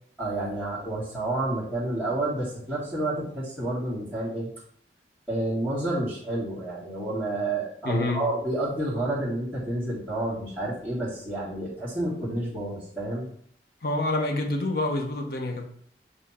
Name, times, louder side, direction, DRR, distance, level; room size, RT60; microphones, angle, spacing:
voice 1, 0.2-4.5 5.3-13.3, right 1 dB, 5° left, -9 dB, 2.1 m, -29 dB
voice 2, 7.8-8.2 13.8-15.7, left 2 dB, 55° left, 3 dB, 1.0 m, -27 dB
7.3 x 3.4 x 4.3 m, 0.62 s
head